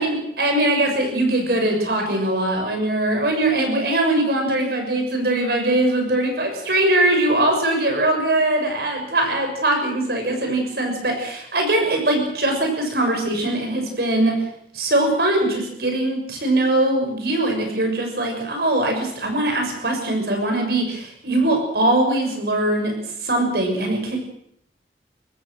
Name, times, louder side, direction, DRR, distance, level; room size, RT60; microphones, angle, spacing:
voice 1, 0.0-14.4 14.7-22.9 23.2-24.2, right 1 dB, 60° right, 3 dB, 6.7 m, -21 dB
23.5 x 18.5 x 6.5 m, 0.72 s
head